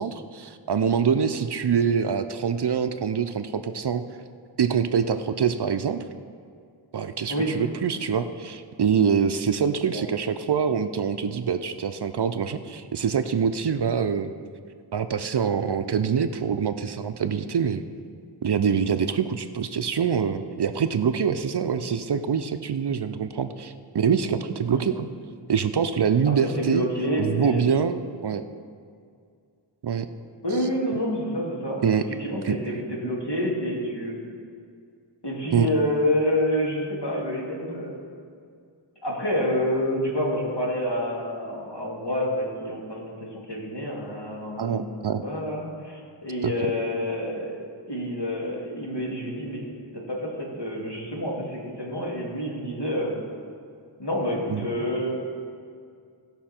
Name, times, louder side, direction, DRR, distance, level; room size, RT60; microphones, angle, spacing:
voice 1, 0.0-4.0 4.6-6.0 6.9-14.3 14.9-17.8 18.4-25.1 25.5-26.9 27.2-28.4 29.8-30.1 31.8-32.1 32.4-32.6 35.5-35.7 44.6-45.2 46.4-46.5 54.5-54.7, right 7 dB, 55° right, 9 dB, 0.6 m, -25 dB
voice 2, 26.2-27.6 30.4-34.2 35.2-38.0 39.0-44.8 45.2-53.1 54.0-55.2, equal, 55° left, -3 dB, 2.7 m, -28 dB
17.0 x 5.7 x 4.4 m, 2.2 s
wide cardioid pair, 40°, 48 cm